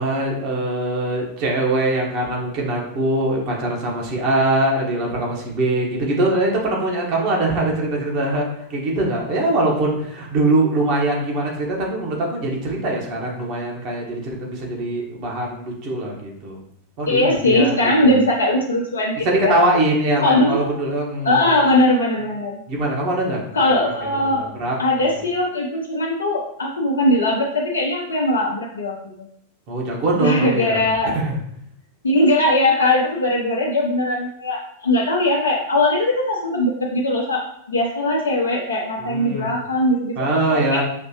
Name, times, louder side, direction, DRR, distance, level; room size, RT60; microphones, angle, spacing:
voice 1, 0.0-16.6 17.0-18.1 19.2-21.6 22.7-23.8 24.2-24.8 29.7-30.8 31.1-31.4 39.0-39.5 40.2-40.8, right 2 dB, 40° right, -2 dB, 1.3 m, -22 dB
voice 2, 17.1-19.7 20.2-20.6 21.2-22.6 23.5-24.4 24.8-28.9 30.2-31.2 32.0-40.8, left 1 dB, 70° left, -2 dB, 0.7 m, -20 dB
5.8 x 3.1 x 2.9 m, 0.72 s
figure-of-eight pair, 90°, 0 cm